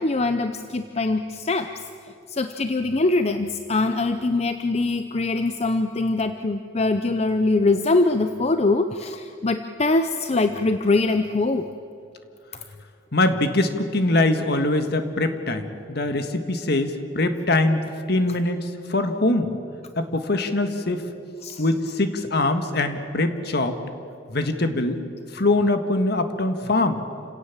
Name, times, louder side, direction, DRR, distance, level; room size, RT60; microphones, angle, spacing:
voice 1, 0.0-1.7 2.3-11.7 21.4-21.6, left 2 dB, 35° left, 8 dB, 0.6 m, -23 dB
voice 2, 13.1-19.5 20.0-21.1 21.6-23.8 24.3-25.0 25.3-27.0, left 2 dB, 55° left, 7 dB, 1.7 m, -23 dB
29.0 x 17.5 x 7.3 m, 2.7 s
head